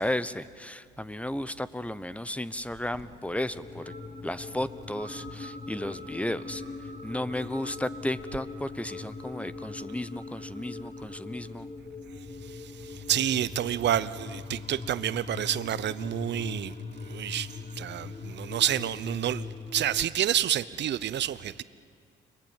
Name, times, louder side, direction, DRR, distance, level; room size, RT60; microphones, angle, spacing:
voice 1, 0.0-3.9 4.2-6.6 7.0-11.7, left 1 dB, 5° left, 0.9 m, -34 dB
Soft whistle, 2.7-11.2, right 2 dB, 35° right, 5.4 m, -51 dB
sound 1, 3.5-20.1, left 4 dB, 30° left, 1.2 m, -41 dB
voice 2, 12.4-16.7 17.0-21.6, right 11 dB, 60° right, 0.8 m, -29 dB
30.0 x 22.0 x 9.0 m
cardioid pair, 90°, 20 cm